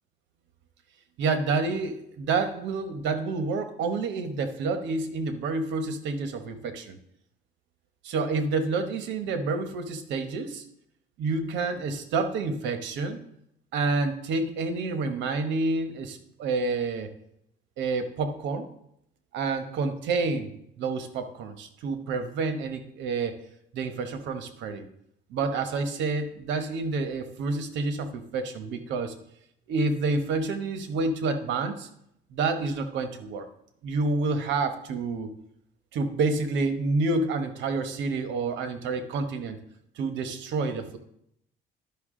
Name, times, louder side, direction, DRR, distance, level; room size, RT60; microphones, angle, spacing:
voice 1, 1.2-7.0 8.0-10.6 11.2-13.2 13.7-17.1 17.8-18.7 19.3-20.5 20.8-23.3 23.7-24.8 25.3-29.1 29.7-31.9 32.3-33.5 33.8-35.3 35.9-39.6 40.0-41.0, right 3 dB, 85° right, 8 dB, 1.0 m, -28 dB
11.5 x 5.6 x 3.7 m, 0.76 s
cardioid pair, 105°, 19 cm